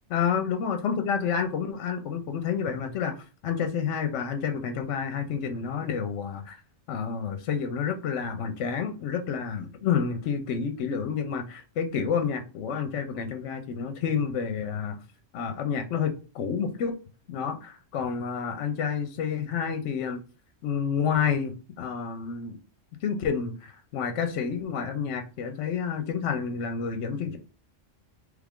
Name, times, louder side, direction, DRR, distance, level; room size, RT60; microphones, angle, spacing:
voice 1, 0.1-6.6 6.9-15.0 15.3-17.0 17.3-20.2 20.6-22.6 23.0-27.4, left 7 dB, 75° left, 0.9 m, -29 dB
3.3 x 2.4 x 3.5 m
omnidirectional pair, 1.3 m